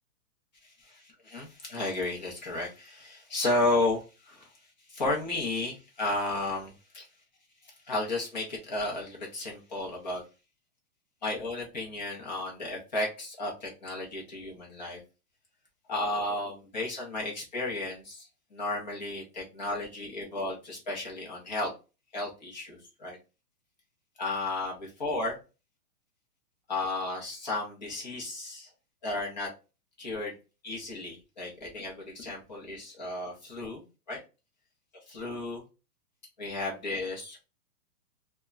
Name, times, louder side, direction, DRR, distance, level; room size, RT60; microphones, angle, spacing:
voice 1, 1.3-4.5 4.9-7.0 7.9-10.2 11.2-15.0 15.9-18.3 18.5-21.7 22.1-23.2 24.2-25.4 26.7-28.7 29.0-29.5 30.0-30.4 30.6-34.2 35.1-35.6 36.4-37.4, left 2 dB, 30° left, -2 dB, 0.6 m, -33 dB
2.2 x 2.0 x 3.5 m, 0.30 s
hypercardioid pair, 175°, 48 cm